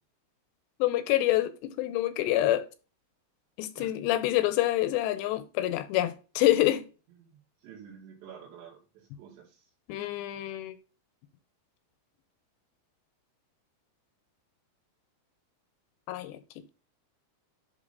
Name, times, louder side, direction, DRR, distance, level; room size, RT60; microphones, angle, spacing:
voice 1, 0.8-2.7 3.6-6.9 9.9-10.8 16.1-16.6, left 14 dB, 80° left, 2.8 m, -27 dB
voice 2, 7.1-9.7, right 8 dB, 75° right, 4.4 m, -50 dB
11.0 x 4.0 x 3.9 m
omnidirectional pair, 5.2 m